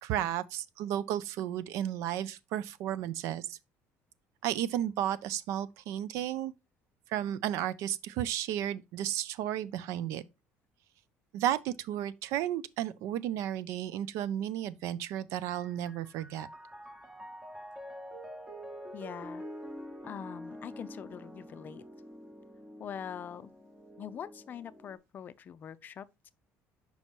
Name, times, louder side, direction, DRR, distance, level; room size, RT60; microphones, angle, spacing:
voice 1, 0.0-3.6 4.4-6.5 7.1-10.2 11.3-16.5, right 11 dB, 75° right, 0.5 m, -33 dB
Piano, 15.5-24.9, equal, 10° right, 1.0 m, -47 dB
voice 2, 18.9-19.5 20.0-21.8 22.8-23.5 24.0-26.3, left 8 dB, 40° left, 0.4 m, -43 dB
5.5 x 4.5 x 4.4 m
cardioid pair, 130°, 5 cm